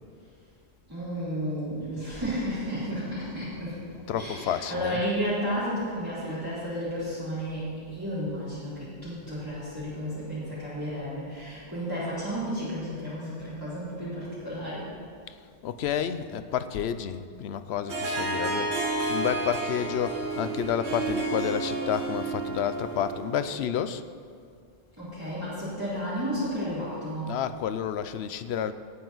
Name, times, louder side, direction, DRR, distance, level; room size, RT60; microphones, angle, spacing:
voice 1, 0.9-14.9 25.0-27.3, equal, 20° right, -13 dB, 3.5 m, -32 dB
voice 2, 4.1-5.0 15.3-15.4 15.6-24.0 27.3-28.7, left 9 dB, 75° left, 12 dB, 0.9 m, -30 dB
Harp, 17.9-23.4, right 2 dB, 80° right, 1.7 m, -31 dB
17.0 x 9.1 x 4.0 m, 2.2 s
omnidirectional pair, 1.1 m